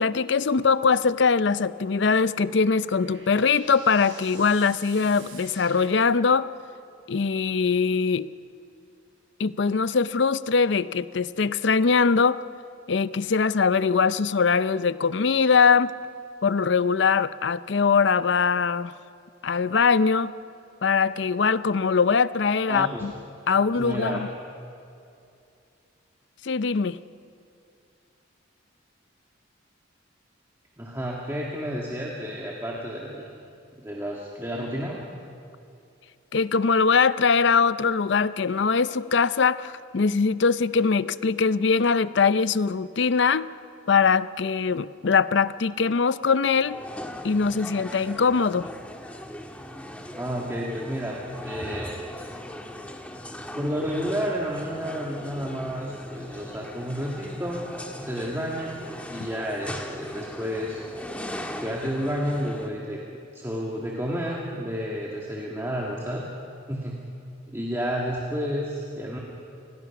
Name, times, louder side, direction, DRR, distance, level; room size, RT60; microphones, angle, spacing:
voice 1, 0.0-6.5 7.1-8.3 9.4-12.4 12.9-15.9 16.4-18.9 19.4-20.3 20.8-23.1 23.5-24.3 26.4-27.0 36.3-43.5 43.9-46.8 47.2-48.7, left 5 dB, 60° left, 16 dB, 0.5 m, -22 dB
sound 1, 2.3-6.7, right 4 dB, 65° right, 6.0 m, -48 dB
voice 2, 22.7-23.1 23.8-24.2 30.8-33.3 33.8-35.0 50.1-52.0 53.5-57.7 58.0-60.8 61.6-63.0 63.3-66.2 66.7-67.0 67.5-69.2, equal, 15° right, -3 dB, 1.9 m, -31 dB
sound 2, 46.6-62.7, left 1 dB, 5° left, 1.4 m, -39 dB
28.0 x 20.5 x 5.9 m, 2.5 s
head